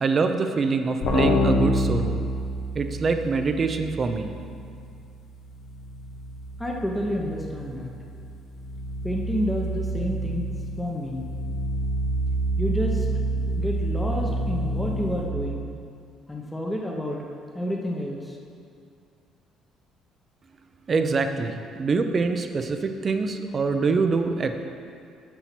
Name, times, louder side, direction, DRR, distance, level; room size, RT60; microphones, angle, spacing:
voice 1, 0.0-2.2 2.7-4.3 20.9-24.6, right 4 dB, 35° right, 7 dB, 0.6 m, -24 dB
sound 1, 1.0-5.4 5.7-15.3, equal, 65° left, 1.1 m, -28 dB
voice 2, 6.6-7.9 9.0-10.5 10.8-11.3 12.6-13.1 13.6-15.7 16.3-17.2 17.5-18.4, equal, 10° left, -1 dB, 1.0 m, -29 dB
7.0 x 5.7 x 6.0 m, 2.4 s
cardioid pair, 95°, 0 cm